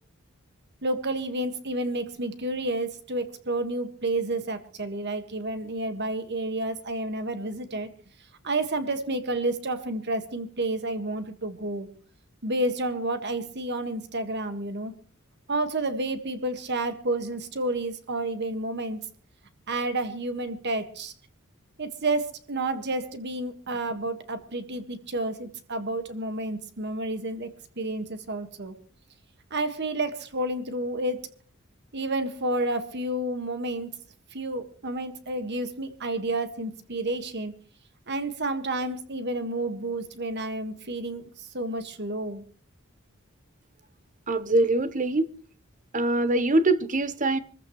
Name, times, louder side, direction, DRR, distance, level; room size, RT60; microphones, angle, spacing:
voice 1, 0.8-7.9 8.4-11.9 12.4-14.9 15.5-19.0 19.7-21.1 21.8-27.5 27.8-28.8 29.5-31.3 31.9-33.9 34.3-37.6 38.1-42.4, right 2 dB, 55° right, 1.7 m, -30 dB
voice 2, 44.3-45.3 45.9-47.4, right 2 dB, 40° right, 1.0 m, -23 dB
25.5 x 15.0 x 3.1 m
head